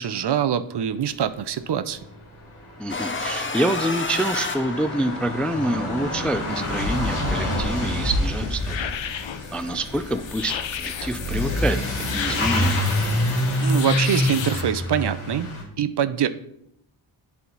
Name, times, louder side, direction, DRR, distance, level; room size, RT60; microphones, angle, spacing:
voice 1, 0.0-2.0 13.6-15.5 15.8-16.3, right 9 dB, 55° right, 11 dB, 0.5 m, -24 dB
Truck / Accelerating revving vroom, 2.0-2.1 2.2-15.6, left 1 dB, 85° left, 1.6 m, -27 dB
voice 2, 2.8-8.9 9.5-11.8 12.1-12.8, right 1 dB, 5° left, 10 dB, 0.3 m, -27 dB
sound 1, 2.9-5.4, left 4 dB, 25° left, 0.7 m, -30 dB
sound 2, 7.8-14.6, left 9 dB, 65° left, 0.6 m, -33 dB
8.4 x 3.6 x 3.9 m, 0.74 s
cardioid pair, 45°, 49 cm